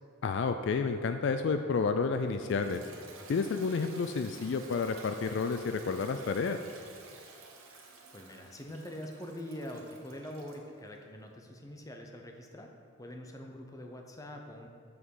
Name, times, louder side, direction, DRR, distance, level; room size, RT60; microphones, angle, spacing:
voice 1, 0.2-2.8 3.3-6.6, left 4 dB, 55° left, 7 dB, 0.3 m, -30 dB
Toilet flush, 2.1-10.7, right 3 dB, 70° right, 1.3 m, -52 dB
voice 2, 8.1-12.7 13.0-14.7, equal, 15° left, 2 dB, 0.7 m, -44 dB
6.1 x 6.0 x 7.1 m, 2.4 s
head